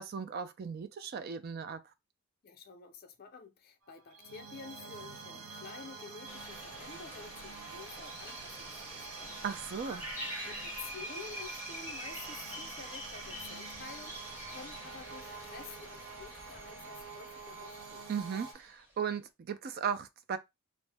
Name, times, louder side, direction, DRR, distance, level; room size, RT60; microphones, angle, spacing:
voice 1, 0.0-1.8 9.4-10.0 18.1-20.4, right 7 dB, 45° right, 0.3 m, -37 dB
voice 2, 2.4-9.4 10.4-18.0, left 5 dB, 45° left, 0.5 m, -50 dB
sound 1, 3.8-18.5, right 5 dB, 75° right, 0.7 m, -47 dB
sound 2, 6.3-18.8, equal, 10° right, 0.7 m, -46 dB
2.6 x 2.0 x 3.3 m
head